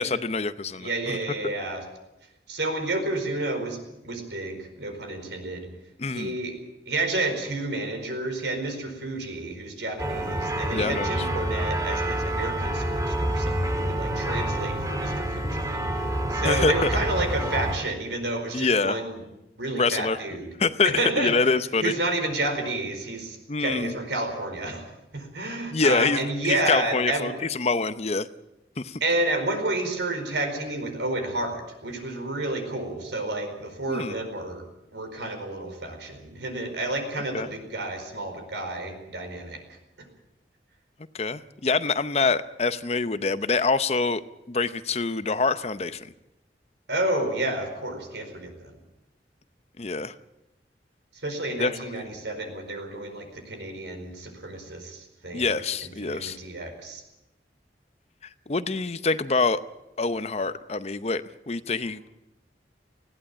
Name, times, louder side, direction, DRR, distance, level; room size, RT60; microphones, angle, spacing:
voice 1, 0.0-1.2 6.0-6.4 10.7-11.1 16.4-16.9 18.5-19.0 19.7-20.2 20.6-21.9 23.5-24.0 25.7-28.3 28.8-29.0 33.9-34.1 37.3-37.5 41.1-44.2 44.5-46.1 49.8-50.1 51.6-52.0 55.3-56.4 58.5-59.6 60.0-62.1, left 4 dB, 35° left, 13 dB, 0.7 m, -25 dB
voice 2, 0.8-1.8 2.5-5.7 6.1-6.6 6.9-19.2 19.6-20.5 20.8-21.3 21.8-27.3 29.0-34.6 34.9-39.8 46.9-48.8 51.1-57.0, right 2 dB, 85° right, 6 dB, 4.7 m, -30 dB
sound 1, 10.0-17.8, right 1 dB, 20° right, 2.2 m, -27 dB
20.0 x 15.5 x 8.8 m, 0.93 s
head